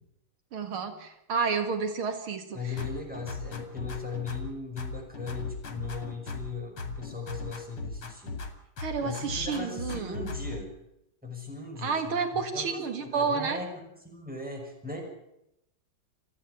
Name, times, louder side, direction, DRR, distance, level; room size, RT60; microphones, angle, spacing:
voice 1, 0.5-2.6 8.8-10.2 11.8-13.6, right 5 dB, 90° right, 7 dB, 2.9 m, -30 dB
voice 2, 2.5-8.4 9.0-10.7 11.2-13.7 14.0-15.0, left 4 dB, 5° right, 0 dB, 6.0 m, -38 dB
sound 1, 2.8-4.5 4.8-6.5 6.8-8.5 8.8-10.6, left 3 dB, 90° left, 3.3 m, -38 dB
28.5 x 9.9 x 9.8 m, 0.84 s
omnidirectional pair, 2.3 m